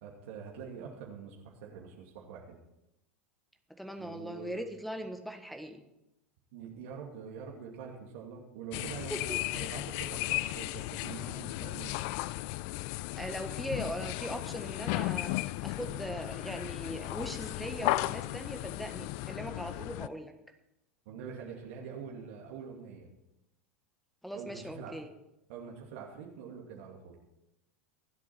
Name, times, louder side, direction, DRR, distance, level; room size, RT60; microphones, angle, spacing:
voice 1, 0.0-2.6 4.0-4.6 6.5-11.9 21.1-23.1 24.3-24.9 25.5-27.2, right 6 dB, 60° right, -1 dB, 2.4 m, -45 dB
voice 2, 3.8-5.9 9.1-9.4 13.2-20.3 24.2-25.1, equal, ahead, 7 dB, 1.5 m, -40 dB
sound 1, 8.7-20.1, left 19 dB, 50° left, 0.5 m, -35 dB
24.5 x 8.5 x 4.4 m, 0.87 s
figure-of-eight pair, 85°, 7 cm